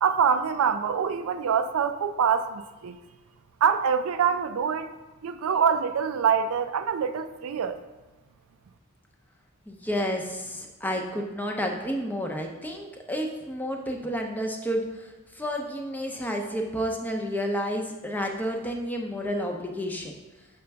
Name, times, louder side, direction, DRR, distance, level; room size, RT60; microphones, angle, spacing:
voice 1, 0.0-3.0 3.6-4.9 5.2-7.8, right 7 dB, 85° right, 10 dB, 0.4 m, -25 dB
voice 2, 9.7-20.1, equal, 10° left, 2 dB, 0.6 m, -30 dB
6.6 x 5.1 x 3.4 m, 1.1 s
head